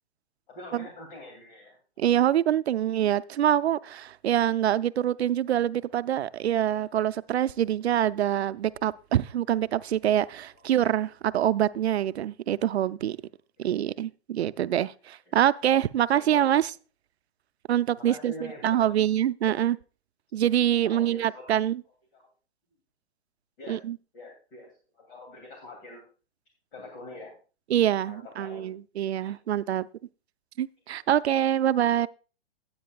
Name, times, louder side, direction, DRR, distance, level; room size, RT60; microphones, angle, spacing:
voice 1, 0.5-1.8 10.5-10.6 13.6-13.7 15.3-15.4 16.1-16.4 18.0-18.7 19.5-19.6 20.7-21.6 22.1-22.3 23.6-23.8 24.1-26.1 26.7-27.4 28.1-28.6 29.2-29.4, left 2 dB, 55° left, 2.8 m, -45 dB
voice 2, 2.0-13.2 13.6-16.7 17.7-18.3 18.6-19.8 20.3-21.8 23.7-24.0 27.7-29.9 30.6-32.1, right 11 dB, 80° right, 0.5 m, -25 dB
15.0 x 8.7 x 2.3 m
hypercardioid pair, 135°, 32 cm